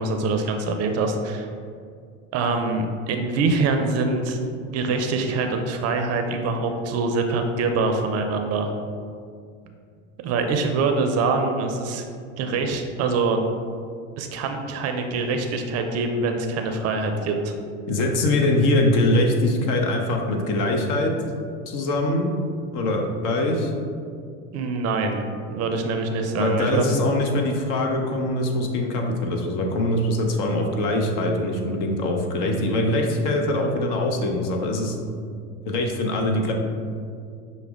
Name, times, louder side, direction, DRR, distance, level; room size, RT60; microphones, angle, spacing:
voice 1, 0.0-1.5 2.3-4.4 4.7-8.7 10.2-12.0 12.4-13.4 14.2-17.5 24.5-25.2 25.5-26.9, right 3 dB, 45° right, 5 dB, 0.5 m, -24 dB
voice 2, 17.9-21.1 21.7-22.4 22.7-23.7 26.4-35.0 35.6-36.5, left 1 dB, 55° left, 2 dB, 0.8 m, -23 dB
6.0 x 2.1 x 3.5 m, 2.2 s
hypercardioid pair, 90°, 38 cm